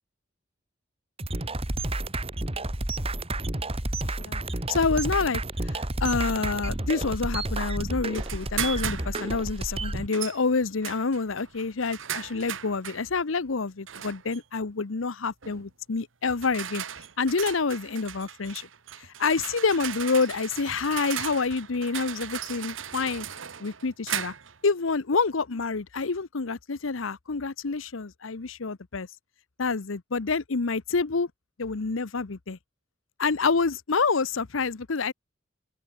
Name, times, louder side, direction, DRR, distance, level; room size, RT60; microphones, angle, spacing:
sound 1, 1.2-10.1, right 2 dB, 30° right, 2.6 m, -30 dB
voice 1, 4.0-4.4 4.7-16.8 17.2-18.7 19.0-23.3 23.6-24.3 24.6-29.1 29.6-31.3 31.6-32.6 33.2-35.1, left 4 dB, 90° left, 0.9 m, -27 dB
sound 2, 8.1-9.4 10.1-10.4 10.8-13.0 13.9-14.4 15.4-15.6 16.3-24.6, right 10 dB, 80° right, 1.3 m, -37 dB
open air
head